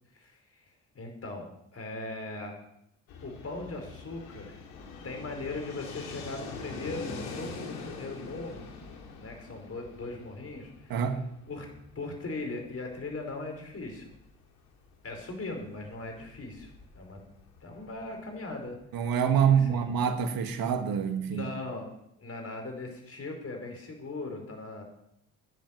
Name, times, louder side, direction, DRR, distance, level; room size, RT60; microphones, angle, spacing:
voice 1, 0.1-0.6 0.9-2.5 3.2-4.6 5.0-8.7 9.2-11.0 11.5-11.7 12.0-14.1 15.0-17.2 17.6-18.8 19.4-19.8 21.3-21.9 22.2-24.8, left 2 dB, 40° left, 5.3 m, -39 dB
Fixed-wing aircraft airplane, 3.1-18.8, left 4 dB, 90° left, 2.5 m, -45 dB
voice 2, 10.9-11.2 18.9-21.4, right 7 dB, 70° right, 1.6 m, -26 dB
10.5 x 8.7 x 9.3 m
supercardioid pair, 60°, 36 cm